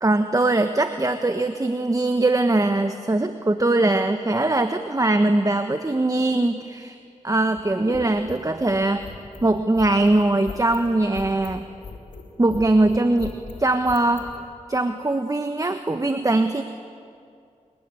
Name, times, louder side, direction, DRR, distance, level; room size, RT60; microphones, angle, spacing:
voice 1, 0.0-7.0 7.2-9.0 9.4-11.6 12.4-13.3 13.6-14.3 14.7-16.6, right 2 dB, 30° right, 7 dB, 1.4 m, -21 dB
sound 1, 7.5-14.4, left 4 dB, 90° left, 3.3 m, -39 dB
27.0 x 22.5 x 9.9 m, 2.3 s
cardioid pair, 55°, 13 cm